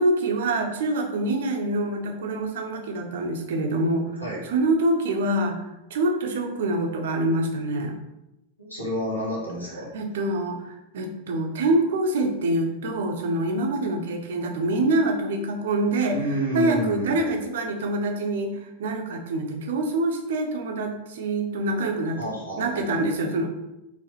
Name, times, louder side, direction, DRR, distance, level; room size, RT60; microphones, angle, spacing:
voice 1, 0.0-4.2 4.5-7.9 9.9-16.2 16.5-23.5, right 2 dB, 60° right, 4 dB, 0.6 m, -25 dB
voice 2, 8.6-9.9 16.1-17.2 22.2-23.3, equal, 85° left, -5 dB, 1.5 m, -30 dB
4.6 x 3.4 x 3.0 m, 0.91 s
figure-of-eight pair, 90°, 0 cm